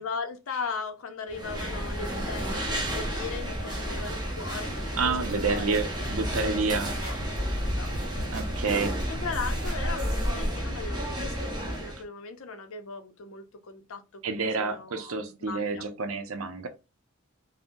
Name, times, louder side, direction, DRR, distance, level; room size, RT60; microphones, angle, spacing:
voice 1, 0.0-5.7 6.0-6.1 6.4-6.6 7.0-7.2 7.6-8.3 9.1-15.9, left 4 dB, 70° left, 0.6 m, -38 dB
sound 1, 1.3-12.0, equal, 20° right, 0.7 m, -32 dB
voice 2, 5.0-7.0 8.3-9.0 14.2-16.7, right 4 dB, 75° right, 0.6 m, -29 dB
sound 2, 5.1-10.3, equal, 40° right, 1.2 m, -36 dB
3.6 x 2.1 x 2.5 m
head